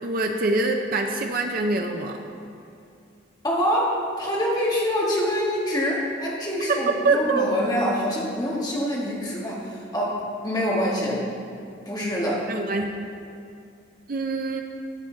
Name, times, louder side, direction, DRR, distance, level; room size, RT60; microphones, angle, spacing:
voice 1, 0.0-2.3 7.0-7.5 12.5-12.9 14.1-14.6, right 3 dB, 45° right, 3 dB, 0.5 m, -24 dB
voice 2, 3.4-11.2 11.8-12.5, equal, 20° left, -5 dB, 1.6 m, -25 dB
12.0 x 7.0 x 3.8 m, 2.4 s
head